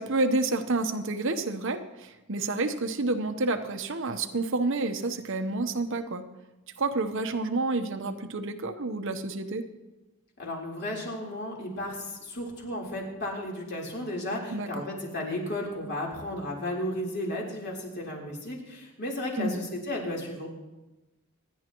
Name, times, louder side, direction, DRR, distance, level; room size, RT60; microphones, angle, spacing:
voice 1, 0.0-6.2 6.8-9.6 14.5-14.8 19.4-19.6, right 2 dB, 60° right, 7 dB, 1.0 m, -29 dB
voice 2, 10.4-20.5, left 1 dB, 50° left, -2 dB, 3.7 m, -34 dB
26.5 x 10.5 x 3.0 m, 1.1 s
head